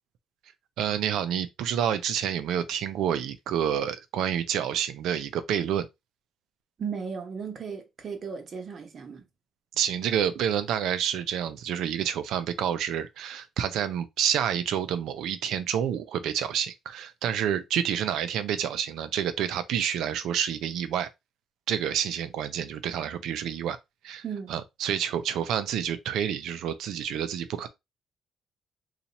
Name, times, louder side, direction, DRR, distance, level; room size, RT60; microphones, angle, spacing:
voice 1, 0.8-5.9 9.8-21.1 21.7-23.8 24.0-24.2 24.5-27.7, right 9 dB, 85° right, 0.5 m, -28 dB
voice 2, 6.8-9.2 24.2-24.5, right 6 dB, 50° right, 1.1 m, -36 dB
2.8 x 2.5 x 4.0 m
cardioid pair, 90°, 0 cm